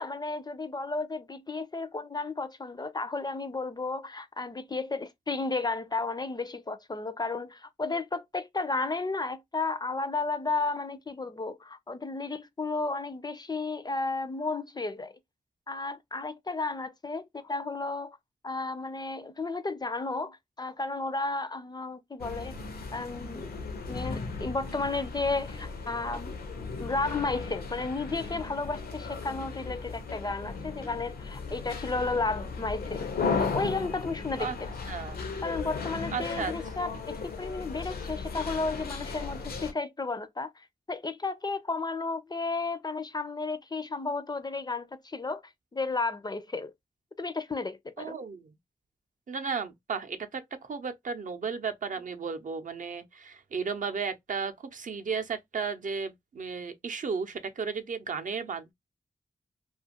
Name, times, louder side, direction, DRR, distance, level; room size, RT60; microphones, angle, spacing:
voice 1, 0.0-15.1 15.7-18.2 18.4-22.6 22.9-23.6 23.9-26.3 26.8-33.1 33.4-34.7 35.4-45.4 45.7-46.7 47.2-48.2, left 3 dB, 25° left, 0.4 m, -33 dB
sound 1, 22.2-39.7, left 4 dB, 80° left, 0.6 m, -36 dB
voice 2, 34.9-35.2 36.1-36.5 48.0-48.5 49.3-58.7, right 5 dB, 55° right, 0.6 m, -34 dB
2.5 x 2.3 x 2.7 m
cardioid pair, 55°, 15 cm